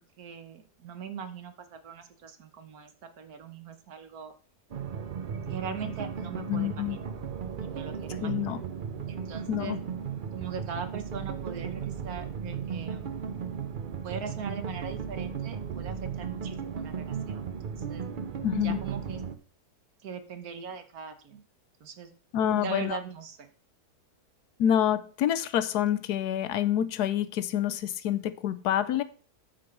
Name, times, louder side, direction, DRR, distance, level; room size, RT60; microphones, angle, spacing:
voice 1, 0.2-4.3 5.5-7.1 7.4-8.6 9.1-9.8 10.3-13.2 14.0-18.1 18.6-19.2 20.0-21.4 21.8-22.1 22.5-23.5, right 6 dB, 70° right, 9 dB, 1.5 m, -41 dB
sound 1, 4.7-19.4, right 7 dB, 50° right, 0.6 m, -36 dB
voice 2, 6.5-7.0 8.2-8.6 9.5-9.8 18.4-18.8 22.3-23.0 24.6-29.0, left 10 dB, 80° left, 14 dB, 1.2 m, -27 dB
8.7 x 5.2 x 5.9 m, 0.42 s
omnidirectional pair, 1.7 m